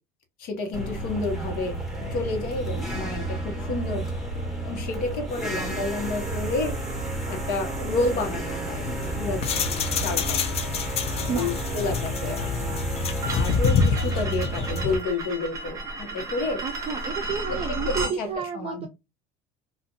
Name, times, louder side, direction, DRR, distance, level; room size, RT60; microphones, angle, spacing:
voice 1, 0.4-1.8 2.1-4.1 4.6-6.7 7.3-8.8 9.2-9.4 10.0-10.6 11.1-12.8 13.3-16.6 17.5-17.6 17.9-18.3 18.5-18.9, left 3 dB, 60° left, 1.1 m, -30 dB
sound 1, 0.7-15.0, right 1 dB, ahead, 1.3 m, -31 dB
sound 2, 8.8-15.0, left 5 dB, 35° left, 0.5 m, -27 dB
sound 3, 13.2-18.2, right 2 dB, 20° right, 0.9 m, -33 dB
voice 2, 16.6-18.9, right 6 dB, 35° right, 0.4 m, -31 dB
2.5 x 2.4 x 2.7 m
supercardioid pair, 115°, 17 cm